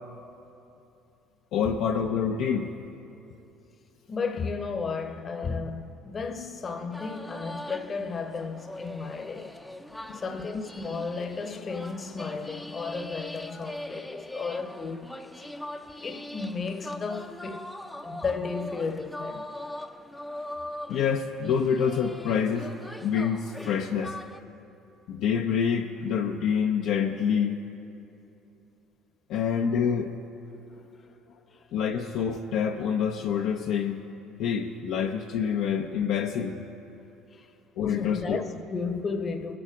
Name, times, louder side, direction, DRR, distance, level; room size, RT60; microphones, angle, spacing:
voice 1, 1.5-2.7 10.1-10.2 20.9-22.7 23.0-24.2 25.1-27.6 29.3-30.1 31.7-34.0 34.4-36.6 37.8-38.4, left 7 dB, 65° left, 0.5 m, -27 dB
voice 2, 4.1-9.6 10.1-15.5 16.0-17.7 18.0-19.4 31.5-31.6 37.3-37.5 37.9-39.6, left 4 dB, 35° left, 0.9 m, -34 dB
sound 1, 6.9-24.4, left 1 dB, 5° left, 0.5 m, -41 dB
18.5 x 6.9 x 3.6 m
hypercardioid pair, 65°, 0 cm